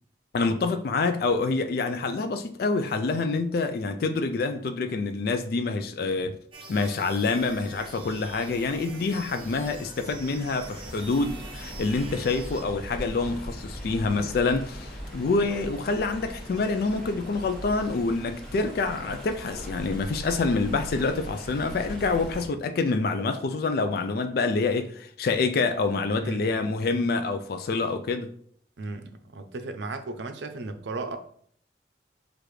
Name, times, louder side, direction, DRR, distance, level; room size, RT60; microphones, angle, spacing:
voice 1, 0.3-6.4 6.7-28.3, left 3 dB, 55° left, 0.3 m, -27 dB
sound 1, 6.5-12.6, right 3 dB, 30° right, 0.8 m, -45 dB
Stream, 7.3-22.4, equal, 5° left, 1.1 m, -40 dB
voice 2, 26.2-26.7 28.8-31.2, right 3 dB, 80° right, 0.5 m, -35 dB
6.5 x 2.5 x 3.1 m
head